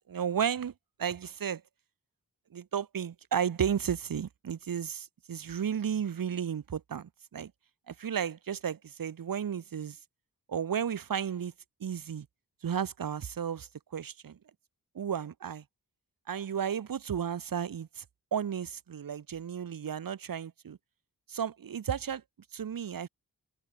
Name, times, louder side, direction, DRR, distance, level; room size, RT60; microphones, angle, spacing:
voice 1, 0.1-0.7 1.0-1.6 2.5-7.5 7.9-10.0 10.5-11.5 11.8-12.3 12.6-14.4 14.9-15.6 16.3-18.0 18.3-20.8 21.3-22.2 22.5-23.1, right 8 dB, 65° right, 1.4 m, -33 dB
wide cardioid pair, 175°, 36 cm